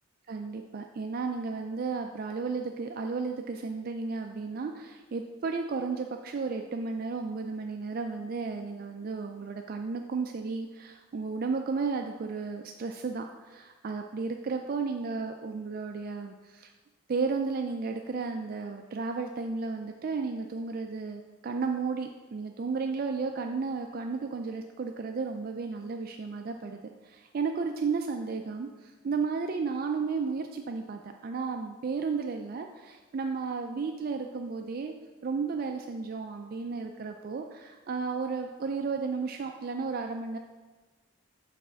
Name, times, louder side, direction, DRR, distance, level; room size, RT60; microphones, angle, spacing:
voice 1, 0.3-16.7 17.1-34.9 35.2-40.4, right 4 dB, 45° right, 4 dB, 0.3 m, -33 dB
5.8 x 4.1 x 6.2 m, 1.3 s
head